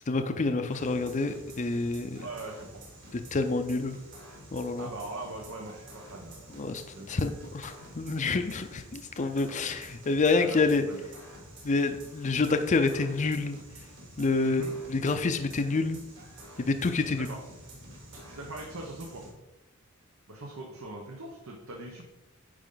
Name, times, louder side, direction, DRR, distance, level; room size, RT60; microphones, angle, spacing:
voice 1, 0.1-2.2 3.1-4.0 4.5-4.9 6.5-6.8 7.1-10.8 11.6-13.6 14.2-14.6 14.9-16.0 16.6-17.3, left 3 dB, 35° left, 8 dB, 0.5 m, -27 dB
sound 1, 0.7-19.3, right 1 dB, 60° right, 2.9 m, -49 dB
voice 2, 2.2-2.8 4.8-7.5 10.4-11.1 14.4-14.7 17.0-17.4 18.2-19.2 20.3-22.1, right 2 dB, 85° right, 0 dB, 1.1 m, -41 dB
9.6 x 5.0 x 3.9 m, 1.0 s
head